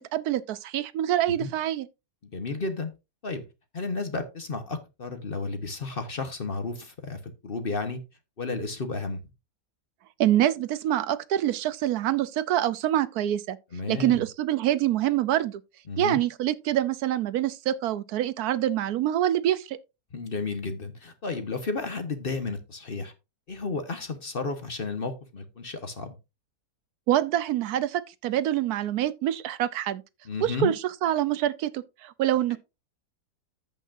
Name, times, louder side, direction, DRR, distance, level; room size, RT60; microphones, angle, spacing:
voice 1, 0.0-1.9 10.2-13.6 13.9-15.6 16.0-19.8 27.1-30.0 30.4-32.6, right 12 dB, 75° right, 1.1 m, -26 dB
voice 2, 2.2-2.9 3.2-3.5 3.7-8.0 8.4-9.2 13.7-14.2 15.9-16.2 20.1-23.1 23.5-26.1 30.2-30.7 32.5-32.6, left 3 dB, 40° left, 1.1 m, -32 dB
14.5 x 5.5 x 2.5 m
omnidirectional pair, 1.7 m